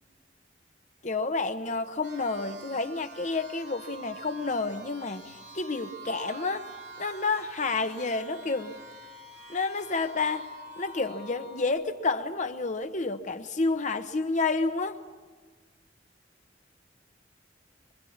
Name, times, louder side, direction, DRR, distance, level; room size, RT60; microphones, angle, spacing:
voice 1, 1.0-5.2 5.5-6.7 7.0-8.7 9.5-10.5 10.8-15.0, left 3 dB, 40° left, 1.0 m, -29 dB
sound 1, 2.0-11.7, right 2 dB, 65° right, 3.2 m, -46 dB
25.5 x 22.5 x 7.2 m
head